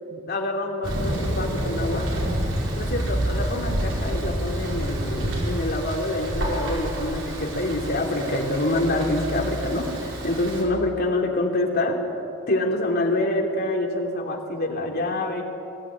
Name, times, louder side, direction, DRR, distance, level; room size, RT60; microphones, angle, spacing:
voice 1, 0.1-2.1 2.7-12.0 12.5-15.4, left 1 dB, 50° left, 0 dB, 3.1 m, -26 dB
Thunder, 0.8-10.6, right 1 dB, 75° right, 5.2 m, -28 dB
22.5 x 15.0 x 9.9 m, 2.7 s
head